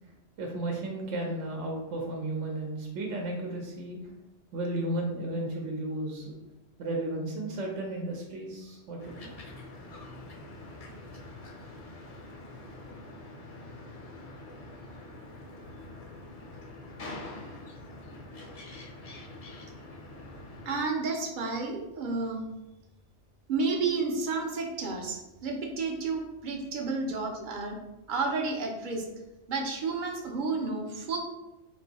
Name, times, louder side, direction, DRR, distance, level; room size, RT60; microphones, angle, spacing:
voice 1, 0.4-4.0 4.5-6.3 6.8-9.3, right 1 dB, 80° right, 0 dB, 1.0 m, -34 dB
sound 1, 9.0-20.8, left 2 dB, 40° left, 0.6 m, -45 dB
voice 2, 20.7-22.4 23.5-27.8 28.1-29.1 29.5-31.2, right 4 dB, 50° right, 2 dB, 0.7 m, -31 dB
3.8 x 2.6 x 4.0 m, 0.97 s
omnidirectional pair, 1.3 m